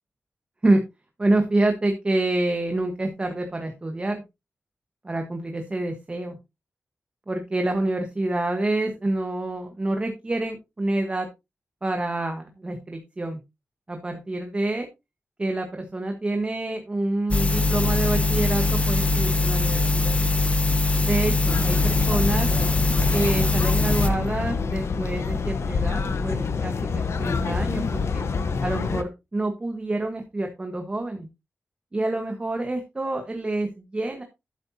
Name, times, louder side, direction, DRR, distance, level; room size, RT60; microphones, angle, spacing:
voice 1, 1.2-4.2 5.0-6.3 7.3-11.3 11.8-13.4 13.9-14.9 15.4-20.2 21.1-22.5 23.1-28.2 28.6-31.3 31.9-34.2, right 2 dB, 25° right, 5 dB, 1.4 m, -27 dB
sound 1, 17.3-24.1, left 2 dB, 30° left, 1.0 m, -22 dB
sound 2, 21.5-29.0, left 5 dB, 85° left, 1.1 m, -27 dB
12.5 x 8.1 x 2.9 m, 0.24 s
wide cardioid pair, 150°, 4 cm